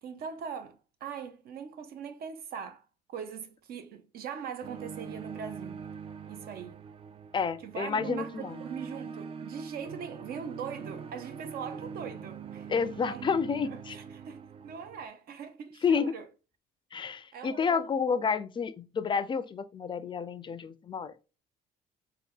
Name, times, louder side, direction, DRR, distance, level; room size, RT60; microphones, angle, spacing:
voice 1, 0.0-5.8 6.3-6.8 7.6-12.7 13.0-13.3 13.6-16.3 17.3-17.8, right 7 dB, 65° right, 0.7 m, -41 dB
sound 1, 4.6-15.1, right 6 dB, 35° right, 0.3 m, -43 dB
voice 2, 7.3-8.6 12.7-14.0 15.8-16.1 16.9-21.1, left 6 dB, 30° left, 0.4 m, -30 dB
4.0 x 2.2 x 3.5 m
cardioid pair, 110°, 17 cm